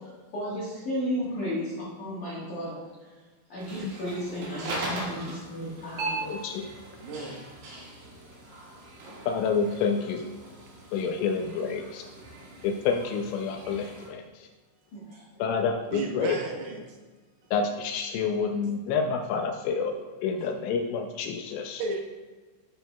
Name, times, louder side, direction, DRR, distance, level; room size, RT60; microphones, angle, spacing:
voice 1, 0.3-2.9 3.5-6.5 14.9-15.3, equal, 65° left, -7 dB, 2.0 m, -33 dB
sound 1, 3.6-14.1, right 2 dB, 65° right, 3.2 m, -40 dB
voice 2, 6.3-6.7 9.3-10.3 10.9-12.1 12.6-14.5 15.4-16.4 17.5-21.8, left 5 dB, 85° left, 4 dB, 2.8 m, -28 dB
voice 3, 7.0-7.4 15.9-17.0 21.8-22.0, right 2 dB, 80° right, 0 dB, 3.5 m, -33 dB
12.5 x 6.2 x 2.3 m, 1.3 s
omnidirectional pair, 5.8 m